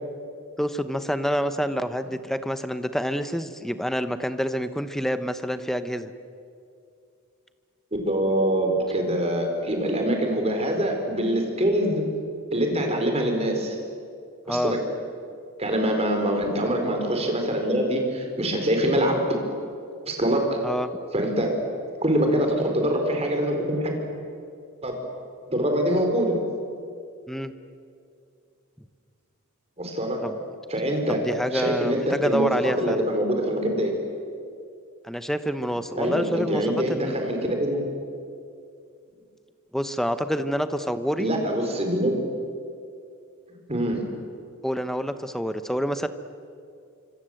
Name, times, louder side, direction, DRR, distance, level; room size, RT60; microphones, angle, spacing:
voice 1, 0.6-6.1 14.5-14.7 20.6-21.0 27.3-27.5 30.2-30.4 31.1-33.0 35.0-37.3 39.7-41.3 44.6-46.1, equal, ahead, 10 dB, 1.0 m, -27 dB
voice 2, 8.1-12.1 12.5-13.8 14.5-14.8 15.6-19.2 20.0-20.4 21.1-21.5 22.0-23.9 24.8-24.9 25.5-26.4 29.8-30.2 30.7-31.2 31.5-32.5 32.8-33.9 36.0-37.8 41.2-42.1 43.7-44.0, right 1 dB, 30° right, 3 dB, 4.4 m, -24 dB
26.0 x 25.0 x 7.9 m, 2.4 s
head